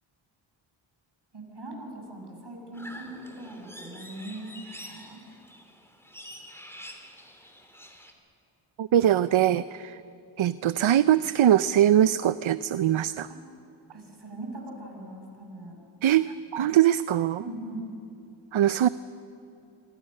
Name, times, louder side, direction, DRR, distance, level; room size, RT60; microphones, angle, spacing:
voice 1, 1.3-5.2 13.3-13.4 13.9-15.8 17.4-17.9, right 1 dB, 55° right, 1 dB, 6.9 m, -40 dB
sound 1, 2.7-8.1, equal, 5° left, 3.3 m, -46 dB
voice 2, 8.8-10.0 10.4-13.3 16.0-17.5 18.5-18.9, right 11 dB, 75° right, 15 dB, 0.6 m, -22 dB
26.0 x 25.5 x 6.6 m, 2.8 s
wide cardioid pair, 65°, 48 cm